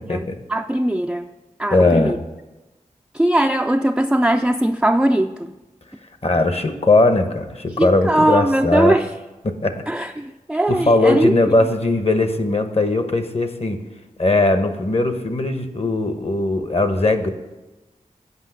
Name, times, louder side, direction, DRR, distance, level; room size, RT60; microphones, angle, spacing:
voice 1, 0.1-1.3 1.6-2.2 3.1-5.5 7.8-9.1 9.9-11.3, right 1 dB, 5° right, 5 dB, 0.4 m, -20 dB
voice 2, 1.7-2.1 6.2-9.0 9.4-9.8 10.7-13.8 14.2-17.3, left 2 dB, 45° left, 8 dB, 1.0 m, -19 dB
8.2 x 5.5 x 7.9 m, 1.1 s
cardioid pair, 45°, 14 cm